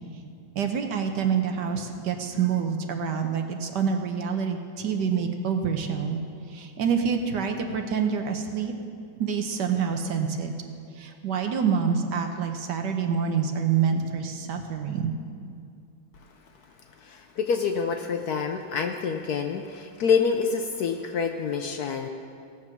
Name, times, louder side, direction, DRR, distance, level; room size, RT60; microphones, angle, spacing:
voice 1, 0.5-6.2 6.5-8.7 9.2-10.5 11.0-15.1, right 6 dB, 65° right, 5 dB, 1.4 m, -27 dB
voice 2, 17.1-22.1, left 6 dB, 65° left, 5 dB, 1.0 m, -27 dB
16.5 x 7.2 x 6.0 m, 2.4 s
omnidirectional pair, 2.1 m